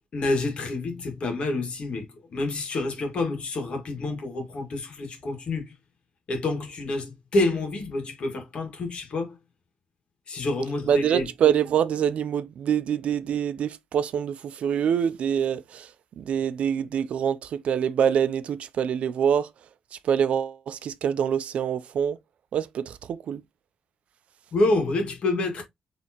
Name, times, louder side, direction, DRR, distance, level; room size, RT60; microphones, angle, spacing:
voice 1, 0.1-5.7 6.3-9.4 10.3-11.3 24.5-25.6, left 2 dB, 55° left, 1.9 m, -28 dB
voice 2, 10.9-15.9 16.2-19.5 20.0-22.2 22.5-23.4, right 8 dB, 70° right, 0.5 m, -25 dB
4.5 x 3.4 x 2.9 m
wide cardioid pair, 135°, 2 cm